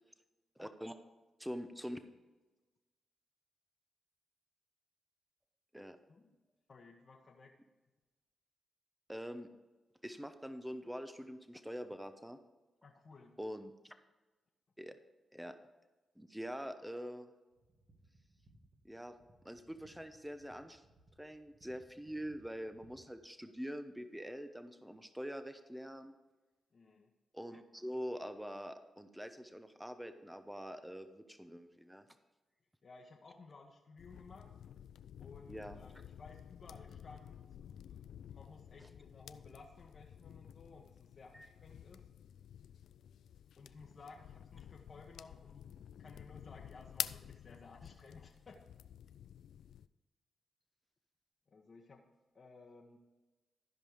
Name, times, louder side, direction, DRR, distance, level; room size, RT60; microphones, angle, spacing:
voice 1, 0.6-1.0 1.4-2.0 5.7-6.0 9.1-9.5 10.0-12.4 13.4-13.9 14.8-15.0 15.3-15.6 16.2-17.3 18.8-19.1 19.4-20.8 21.2-26.1 27.3-32.0 35.5-35.8 38.8-38.9 41.3-41.5, equal, 5° right, 9 dB, 0.9 m, -45 dB
voice 2, 6.7-7.6 12.8-13.7 26.7-27.1 32.8-34.5 35.2-37.4 37.9-42.1 43.6-45.7 46.0-48.6 51.5-52.0 52.3-53.0, left 3 dB, 50° left, -2 dB, 1.3 m, -57 dB
sound 1, 17.5-23.2, right 2 dB, 50° right, 2.3 m, -66 dB
sound 2, 34.0-49.9, left 9 dB, 80° left, 0.3 m, -50 dB
13.5 x 5.4 x 5.1 m, 1.2 s
supercardioid pair, 55°, 0 cm